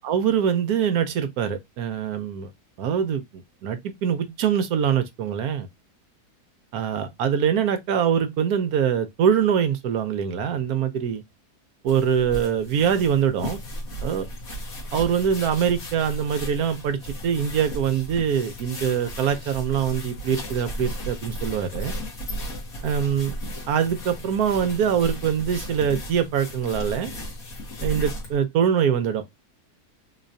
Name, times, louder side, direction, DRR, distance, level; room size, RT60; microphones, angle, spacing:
voice 1, 0.0-2.5 2.8-5.7 6.7-11.2 11.8-13.6 14.0-14.3 14.9-21.9 22.8-23.3 23.7-27.1 27.8-29.2, right 8 dB, 70° right, 1.1 m, -23 dB
sound 1, 11.9-28.4, equal, 60° left, 1.8 m, -35 dB
3.9 x 3.0 x 2.6 m
omnidirectional pair, 1.7 m